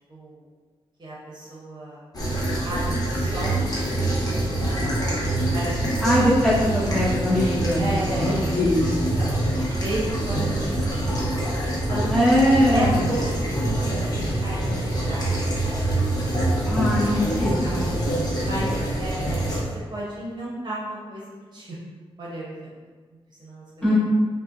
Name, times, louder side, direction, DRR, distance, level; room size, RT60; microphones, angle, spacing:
voice 1, 0.1-0.4 1.0-2.0 2.6-3.8 4.3-5.2 5.5-5.7 7.8-8.4 9.1-9.5 9.8-12.1 12.7-16.0 16.7-16.9 17.2-17.7 18.4-18.7 19.0-21.8 22.2-22.5 23.4-23.6, right 1 dB, 45° right, -6 dB, 0.8 m, -34 dB
sound 1, 2.1-19.6, right 1 dB, 40° left, 0.7 m, -25 dB
voice 2, 6.0-8.9 10.4-10.5 12.1-13.0 16.7-18.3 23.8-24.0, equal, 10° left, -11 dB, 1.4 m, -22 dB
5.3 x 2.1 x 2.6 m, 1.4 s
wide cardioid pair, 150°, 10 cm